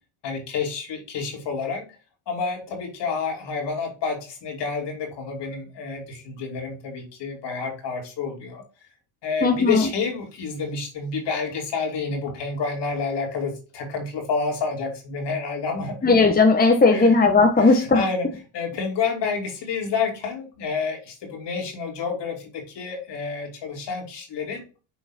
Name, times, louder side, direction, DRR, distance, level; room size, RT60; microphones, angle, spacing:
voice 1, 0.2-1.9 2.3-8.6 9.2-16.1 16.9-17.1 17.6-18.3 18.5-24.6, left 5 dB, 60° left, 1 dB, 2.8 m, -29 dB
voice 2, 9.4-9.9 16.0-18.0, left 3 dB, 20° left, 3 dB, 1.4 m, -17 dB
6.8 x 3.9 x 4.3 m, 0.33 s
supercardioid pair, 75°, 48 cm